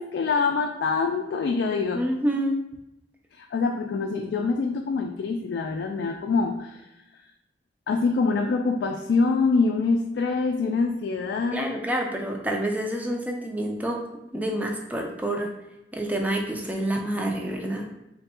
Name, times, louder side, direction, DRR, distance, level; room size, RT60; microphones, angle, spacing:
voice 1, 0.0-2.0 3.3-6.8 7.9-11.7, left 4 dB, 75° left, 3 dB, 0.3 m, -25 dB
voice 2, 1.9-2.6 11.5-14.0 14.3-15.5 15.9-17.9, right 1 dB, 10° right, 1 dB, 0.4 m, -28 dB
3.3 x 2.2 x 4.2 m, 0.90 s
head